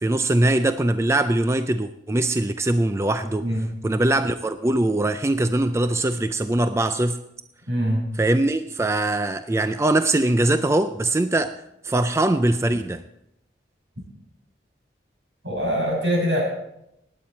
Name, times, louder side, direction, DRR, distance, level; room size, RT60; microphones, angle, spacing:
voice 1, 0.0-3.4 3.8-7.2 8.2-11.6 11.8-13.0, right 1 dB, 15° right, 10 dB, 0.4 m, -22 dB
voice 2, 7.7-8.0 15.4-16.4, equal, 75° right, -2 dB, 6.7 m, -23 dB
18.0 x 9.0 x 4.4 m, 0.82 s
head